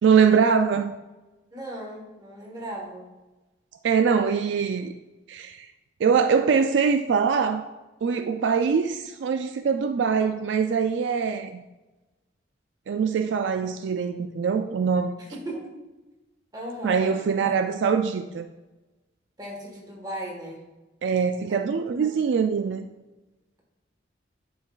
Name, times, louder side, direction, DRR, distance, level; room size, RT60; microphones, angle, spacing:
voice 1, 0.0-0.9 3.8-4.9 5.3-5.7 6.0-7.6 8.0-11.6 12.9-15.1 16.8-18.5 21.0-22.8, right 6 dB, 75° right, 0.3 m, -23 dB
voice 2, 1.5-3.1 15.2-15.7 16.5-17.2 17.4-17.5 19.4-20.6 21.5-21.6 21.9-22.2, right 1 dB, 20° right, 1.5 m, -37 dB
9.5 x 5.6 x 2.4 m
head